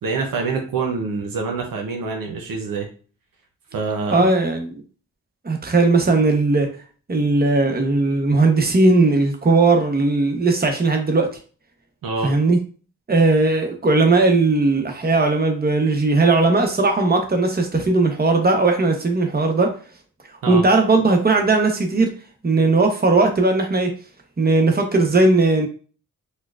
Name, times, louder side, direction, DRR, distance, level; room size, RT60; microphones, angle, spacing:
voice 1, 0.0-2.9 3.7-4.3 12.0-12.4 20.4-20.6, right 4 dB, 85° right, 2 dB, 0.7 m, -25 dB
voice 2, 4.1-4.8 5.4-6.7 7.1-11.3 12.2-12.6 13.1-19.7 20.5-22.1 22.4-23.9 24.4-25.7, right 3 dB, 30° right, 4 dB, 0.9 m, -18 dB
4.3 x 2.2 x 2.4 m, 0.39 s
cardioid pair, 50°, 33 cm